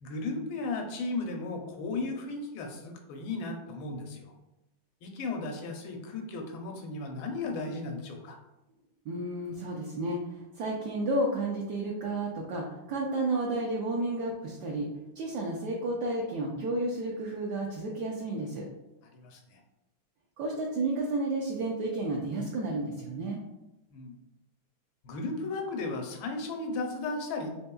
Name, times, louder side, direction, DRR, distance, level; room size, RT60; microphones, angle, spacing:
voice 1, 0.0-4.3 5.0-8.4 19.1-19.6 23.9-24.2 25.0-27.5, left 3 dB, 85° left, 3 dB, 1.4 m, -35 dB
voice 2, 9.1-14.9 15.2-18.6 20.4-23.4, right 2 dB, 70° right, -1 dB, 1.0 m, -32 dB
4.2 x 3.6 x 2.2 m, 0.96 s
omnidirectional pair, 2.1 m